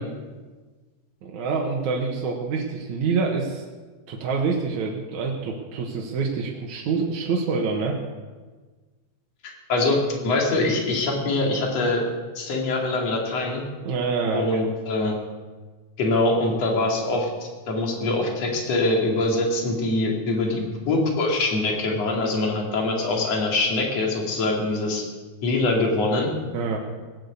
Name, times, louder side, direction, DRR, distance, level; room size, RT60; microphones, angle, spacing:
voice 1, 1.2-3.6 4.1-8.0 13.8-14.5 26.5-26.8, right 4 dB, 75° right, -1 dB, 2.8 m, -26 dB
voice 2, 9.7-12.0 12.4-13.6 14.3-15.1 16.0-25.0 25.4-26.3, left 2 dB, 60° left, -1 dB, 3.7 m, -23 dB
18.5 x 8.9 x 8.3 m, 1.3 s
omnidirectional pair, 3.4 m